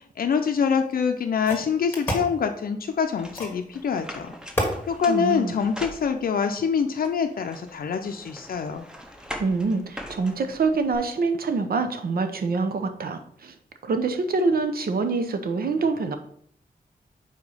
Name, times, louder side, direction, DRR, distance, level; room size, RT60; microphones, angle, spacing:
voice 1, 0.0-4.3 4.9-8.9, left 6 dB, 75° left, 6 dB, 0.5 m, -25 dB
sound 1, 0.7-0.8 1.5-2.3 3.3-3.7 4.6-4.8, left 1 dB, 15° left, 1.4 m, -28 dB
sound 2, 3.2-6.5 7.0-11.0, equal, 5° right, 0.7 m, -41 dB
voice 2, 5.1-5.5 9.4-13.5 13.8-16.2, right 4 dB, 80° right, 8 dB, 0.7 m, -25 dB
4.9 x 4.3 x 5.4 m, 0.64 s
wide cardioid pair, 180°, 15 cm